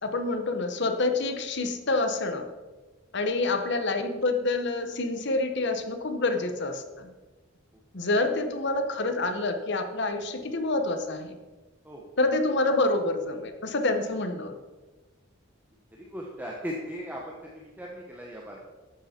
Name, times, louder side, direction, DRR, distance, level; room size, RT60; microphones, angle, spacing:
voice 1, 0.0-2.5 3.1-7.1 7.9-11.4 12.2-14.5, left 2 dB, 60° left, 7 dB, 1.1 m, -27 dB
voice 2, 7.7-8.1 11.8-12.1 15.9-18.6, equal, 10° right, -2 dB, 1.2 m, -38 dB
12.5 x 8.2 x 4.4 m, 1.3 s
head